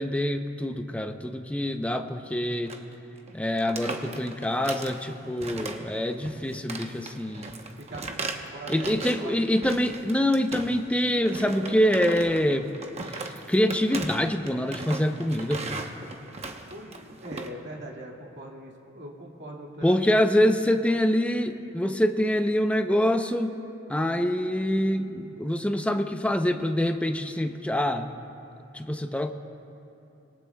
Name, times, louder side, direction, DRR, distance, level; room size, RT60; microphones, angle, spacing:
voice 1, 0.0-2.7 3.3-7.6 8.7-12.7 13.1-15.8 19.8-23.6 23.9-28.1 28.7-29.3, equal, 5° left, 6 dB, 0.6 m, -25 dB
sound 1, 2.7-2.9 3.2-3.3 3.6-5.0 5.4-6.0 6.2-9.3 9.6-10.9 11.2-17.5, right 3 dB, 35° right, 0.9 m, -37 dB
voice 2, 7.8-9.3 16.7-20.1 20.9-21.0, right 1 dB, 65° right, -2 dB, 2.1 m, -41 dB
25.5 x 21.0 x 2.3 m, 2.8 s
head